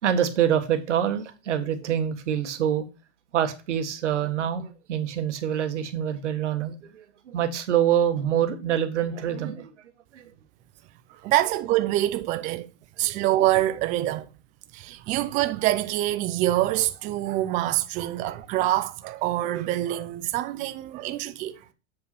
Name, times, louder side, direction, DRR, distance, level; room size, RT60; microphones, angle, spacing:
voice 1, 0.0-2.9 3.3-9.7 10.1-10.2 13.0-13.3 18.2-18.4 20.6-20.7, right 9 dB, 85° right, 1.5 m, -26 dB
voice 2, 11.2-12.7 13.0-14.3 14.7-21.7, right 15 dB, 25° right, 0.4 m, -25 dB
7.5 x 5.0 x 4.1 m
hypercardioid pair, 130°, 35 cm